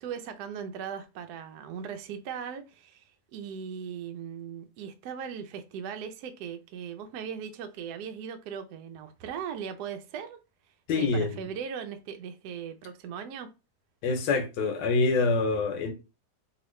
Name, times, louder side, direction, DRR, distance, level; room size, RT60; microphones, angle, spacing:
voice 1, 0.0-3.1 3.3-10.4 11.0-13.5, right 7 dB, 70° right, 1.0 m, -38 dB
voice 2, 10.9-11.4 14.0-15.9, left 3 dB, 80° left, 1.4 m, -26 dB
2.9 x 2.9 x 3.1 m
omnidirectional pair, 2.0 m